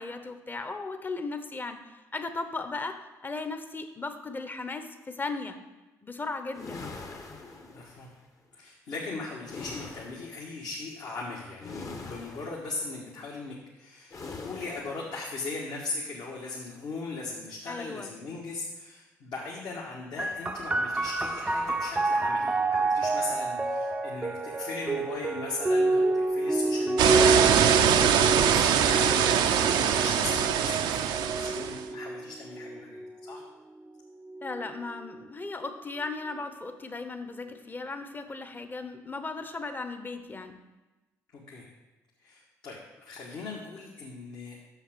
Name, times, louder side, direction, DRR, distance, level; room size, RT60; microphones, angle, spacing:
voice 1, 0.0-5.6 6.0-6.9 17.7-18.1 34.4-40.6, left 3 dB, 25° left, 8 dB, 0.9 m, -36 dB
sound 1, 6.5-8.1 9.4-10.4 11.6-12.7 14.1-15.1, left 3 dB, 40° left, 1.1 m, -42 dB
voice 2, 7.7-8.1 8.5-33.4 41.3-41.6 42.2-44.6, left 3 dB, 60° left, -4 dB, 1.4 m, -39 dB
sound 2, 20.2-33.4 34.3-35.1, right 2 dB, 15° right, 0.5 m, -29 dB
sound 3, 27.0-31.8, right 8 dB, 65° right, 0.5 m, -23 dB
6.7 x 5.7 x 6.0 m, 1.1 s
hypercardioid pair, 55°, 8 cm